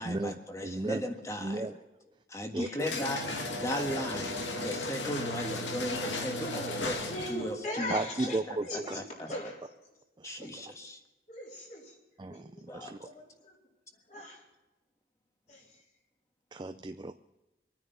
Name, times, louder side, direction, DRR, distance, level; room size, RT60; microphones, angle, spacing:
voice 1, 0.0-1.6 2.3-7.0 7.3-7.9 8.5-9.3 10.2-11.0 12.7-12.9, equal, 15° left, 5 dB, 1.5 m, -37 dB
voice 2, 0.6-1.1 1.4-1.7 2.5-2.9 7.9-9.0 10.2-10.4 12.2-13.0 16.5-17.1, right 2 dB, 25° right, 9 dB, 0.4 m, -34 dB
sound 1, 2.8-7.5, left 2 dB, 85° left, 2.3 m, -35 dB
voice 3, 6.4-6.8 7.1-9.7 10.4-10.8 11.3-12.0 12.3-13.6 14.1-14.4 15.5-15.8, left 1 dB, 40° left, -1 dB, 3.8 m, -41 dB
24.5 x 9.7 x 5.6 m, 1.1 s
head